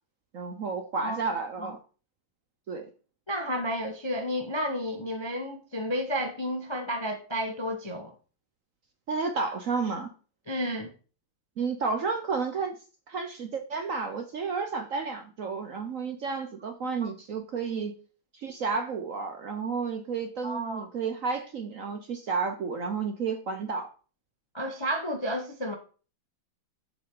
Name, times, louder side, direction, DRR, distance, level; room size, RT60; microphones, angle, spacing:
voice 1, 0.3-1.8 2.7-2.9 9.1-10.1 11.6-12.7 13.1-17.9 18.3-23.9, right 5 dB, 55° right, 1.0 m, -31 dB
voice 2, 3.3-8.1 10.5-10.9 17.0-17.1 20.4-20.9 24.5-25.8, equal, 25° left, 0.6 m, -31 dB
7.3 x 7.1 x 3.8 m
omnidirectional pair, 2.1 m